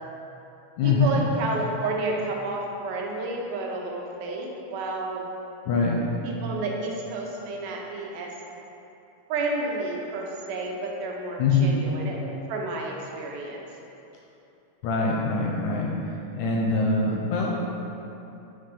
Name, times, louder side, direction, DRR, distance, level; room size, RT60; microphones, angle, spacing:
voice 1, 0.8-5.3 6.2-8.3 9.3-13.6 17.3-17.4, right 2 dB, 85° right, 0 dB, 2.3 m, -31 dB
voice 2, 11.4-11.7 14.8-15.9 16.4-17.5, left 4 dB, 80° left, -3 dB, 1.8 m, -23 dB
5.8 x 3.3 x 5.2 m, 2.8 s
omnidirectional pair, 3.8 m